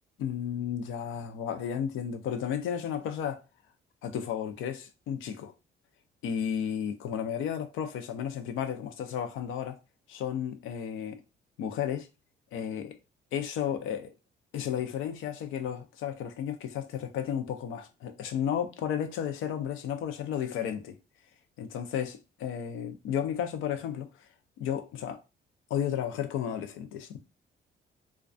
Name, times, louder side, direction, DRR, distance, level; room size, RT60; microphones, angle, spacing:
voice 1, 0.2-3.4 4.0-5.5 6.2-9.8 10.1-11.2 11.6-12.1 12.5-13.0 13.3-14.1 14.5-21.0 21.6-24.1 24.6-25.2 25.7-27.2, left 9 dB, 90° left, 0.4 m, -33 dB
2.3 x 2.2 x 2.4 m
cardioid pair, 90°, 20 cm